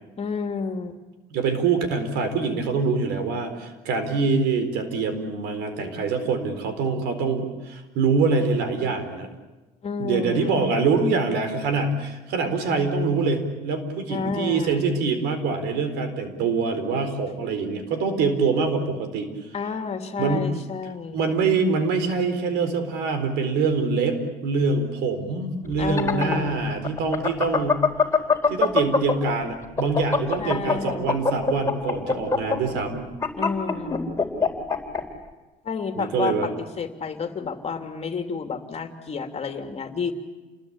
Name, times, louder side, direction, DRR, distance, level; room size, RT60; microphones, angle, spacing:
voice 1, 0.2-1.0 9.8-10.5 14.1-14.8 19.5-21.3 25.8-26.7 30.4-31.2 33.4-34.2 35.6-40.1, left 5 dB, 40° left, 5 dB, 2.8 m, -30 dB
voice 2, 1.3-9.3 10.0-19.3 20.2-20.5 21.1-27.8 28.5-33.1 36.0-36.5, right 4 dB, 90° right, 9 dB, 4.2 m, -24 dB
sound 1, 25.7-29.3 29.6-35.0, left 4 dB, 15° left, 3.9 m, -22 dB
29.0 x 21.0 x 8.8 m, 1.2 s
cardioid pair, 110°, 17 cm